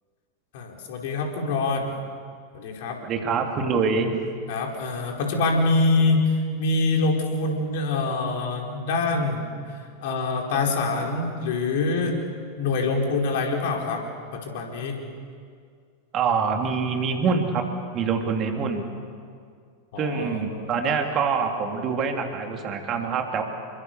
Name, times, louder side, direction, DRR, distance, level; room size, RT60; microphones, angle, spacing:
voice 1, 0.5-1.9 2.5-3.0 4.5-9.5 10.0-12.2 12.6-14.0 14.3-15.0 19.9-20.9, left 3 dB, 50° left, 1 dB, 4.6 m, -25 dB
voice 2, 3.0-4.1 16.1-17.7 17.9-18.9 20.0-23.4, right 5 dB, 30° right, 3 dB, 3.1 m, -25 dB
29.0 x 23.5 x 6.8 m, 2.1 s
figure-of-eight pair, 90°, 0 cm